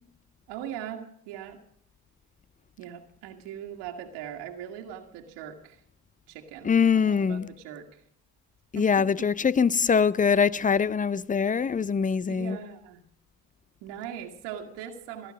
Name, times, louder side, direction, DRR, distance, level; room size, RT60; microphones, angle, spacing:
voice 1, 0.5-1.6 2.8-5.8 6.3-8.0 8.8-9.3 12.3-13.0 13.8-15.3, right 9 dB, 85° right, 1.8 m, -40 dB
voice 2, 6.6-7.5 8.7-12.6, left 6 dB, 20° left, 0.5 m, -23 dB
17.5 x 11.0 x 6.3 m
supercardioid pair, 70°, 41 cm